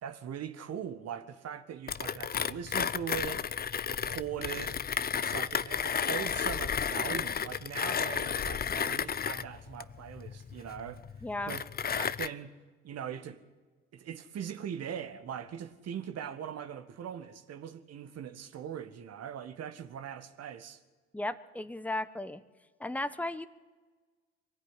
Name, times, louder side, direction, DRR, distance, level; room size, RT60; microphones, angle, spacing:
voice 1, 0.0-3.5 3.8-4.8 5.1-11.0 11.5-11.6 11.9-12.6 12.8-13.4 13.9-20.8, right 9 dB, 55° right, 1.8 m, -41 dB
Mechanisms, 1.9-12.3, left 7 dB, 30° left, 0.7 m, -33 dB
voice 2, 11.2-11.6 21.1-22.4 22.8-23.5, left 1 dB, 5° left, 1.2 m, -35 dB
23.0 x 15.5 x 9.9 m
hypercardioid pair, 60°, 30 cm